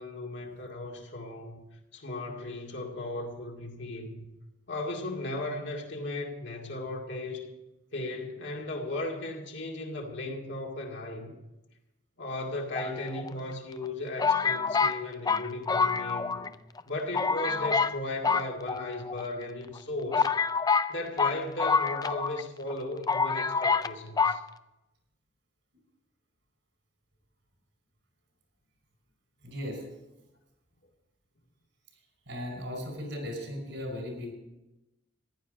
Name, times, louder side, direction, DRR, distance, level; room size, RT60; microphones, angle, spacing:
voice 1, 0.0-1.6 1.9-4.2 4.7-7.5 7.9-11.3 12.2-16.5 16.9-20.3 20.9-24.4, left 2 dB, 70° left, 0 dB, 2.2 m, -36 dB
sound 1, 12.7-13.5 14.2-16.5 16.8-16.9 17.1-18.0 18.2-19.2 19.8-19.9 20.1-22.4 22.7-22.8 23.1-23.9 24.2-24.4, left 5 dB, 20° left, 0.4 m, -27 dB
voice 2, 29.4-29.8 32.3-34.3, left 1 dB, 75° right, 3 dB, 5.4 m, -37 dB
15.0 x 11.0 x 5.2 m, 0.98 s
head